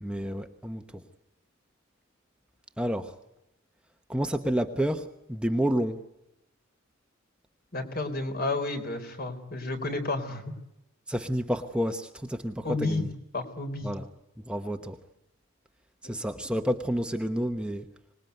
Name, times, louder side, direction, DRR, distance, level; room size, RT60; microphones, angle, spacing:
voice 1, 0.0-0.8 2.8-3.2 4.1-6.0 11.1-13.1 13.8-14.1 14.4-15.0 16.0-17.9, equal, 5° right, 6 dB, 1.0 m, -29 dB
voice 2, 7.7-10.5 12.6-13.1 13.3-13.9, left 2 dB, 50° left, 7 dB, 3.9 m, -31 dB
25.5 x 20.5 x 9.4 m, 0.91 s
head